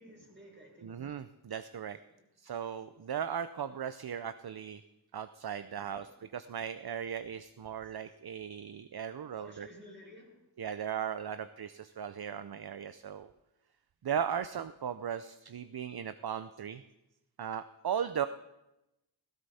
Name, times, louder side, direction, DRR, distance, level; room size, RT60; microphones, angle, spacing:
voice 1, 0.0-1.2 2.1-2.3 5.7-6.1 9.3-10.4, equal, 25° right, -3 dB, 6.0 m, -54 dB
voice 2, 0.8-2.0 2.4-4.8 5.1-9.7 10.6-13.3 14.0-16.8 17.4-18.3, right 8 dB, 60° right, 11 dB, 0.6 m, -37 dB
16.0 x 16.0 x 4.2 m, 0.94 s
wide cardioid pair, 45°, 44 cm